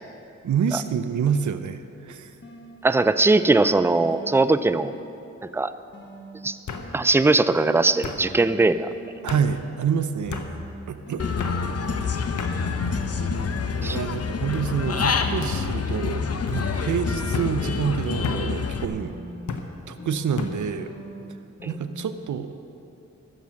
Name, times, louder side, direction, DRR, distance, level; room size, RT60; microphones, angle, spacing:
voice 1, 0.4-2.4 9.2-10.5 10.9-11.3 12.5-12.8 13.3-13.4 13.8-19.1 19.9-20.9 21.6-22.6, right 7 dB, 75° right, 11 dB, 0.6 m, -27 dB
sound 1, 2.3-5.3 5.9-9.7 10.2-14.2 14.6-18.5 18.9-22.0, equal, 40° left, 1.5 m, -42 dB
voice 2, 2.8-5.0 5.4-5.7 6.4-6.6 6.9-8.9 13.8-14.0, right 3 dB, 10° right, 13 dB, 0.4 m, -20 dB
sound 2, 3.2-3.6 4.0-4.5 5.6-5.7 6.7-6.9 8.0-8.2 9.3-9.5 10.3-10.5 11.4-11.6 12.4-12.6 13.3-13.7 14.5-14.7 15.4-15.6 16.5-16.6 17.3-17.5 18.2-18.5 19.5-19.7 20.4-20.6, left 5 dB, 75° left, 1.0 m, -33 dB
Human voice / Bird, 11.2-18.8, left 5 dB, 55° left, 0.8 m, -27 dB
14.5 x 7.2 x 6.3 m, 2.7 s
cardioid pair, 55°, 30 cm